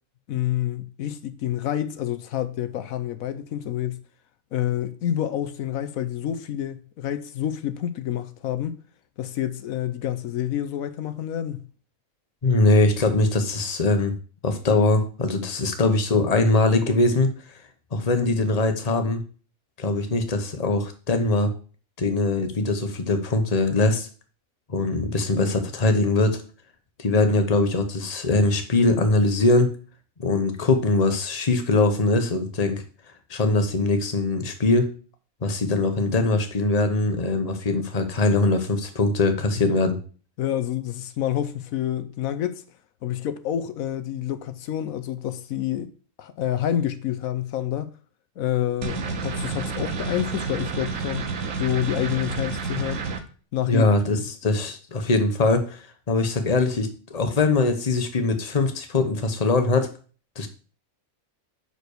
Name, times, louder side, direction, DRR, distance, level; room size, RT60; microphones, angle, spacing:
voice 1, 0.3-4.0 4.5-8.8 9.2-11.7 40.4-42.6 43.0-45.9 46.2-47.9 48.4-51.3 51.6-53.1 53.5-53.9, left 11 dB, 80° left, 1.1 m, -28 dB
voice 2, 12.4-14.2 14.4-17.3 17.9-19.2 19.8-21.5 22.0-24.1 24.7-26.4 27.0-29.7 30.2-32.8 33.3-34.9 35.4-40.0 53.7-59.9 60.4-60.5, left 2 dB, 30° left, 1.1 m, -22 dB
sound 1, 48.8-53.2, right 5 dB, 75° right, 1.3 m, -30 dB
6.1 x 5.2 x 6.6 m
omnidirectional pair, 1.4 m